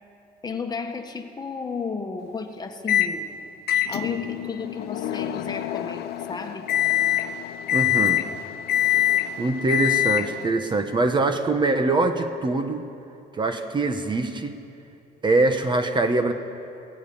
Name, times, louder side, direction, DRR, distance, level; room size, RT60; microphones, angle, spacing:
voice 1, 0.4-3.3 3.9-6.7, left 4 dB, 25° left, 5 dB, 1.6 m, -33 dB
Microwave oven, 2.9-3.2 3.7-10.5, left 12 dB, 70° left, 1.0 m, -24 dB
voice 2, 7.7-8.3 9.4-12.9 13.3-14.6 15.2-16.3, right 2 dB, 25° right, 8 dB, 1.2 m, -23 dB
23.0 x 17.0 x 7.1 m, 2.8 s
cardioid pair, 110°, 17 cm